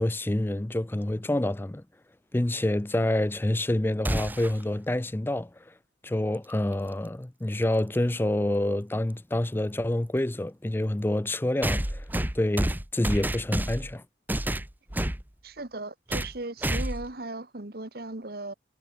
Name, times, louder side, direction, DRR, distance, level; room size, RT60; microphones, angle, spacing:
voice 1, 0.0-1.8 2.3-5.5 6.0-12.0 12.3-14.0, left 1 dB, 10° left, 0.4 m, -27 dB
sound 1, 4.0-4.6 6.7-6.8 7.9-8.0 11.6-13.9 14.3-15.2 16.1-16.4 16.6-17.1, right 1 dB, 10° right, 1.1 m, -29 dB
voice 2, 15.4-18.5, right 2 dB, 55° right, 1.5 m, -37 dB
head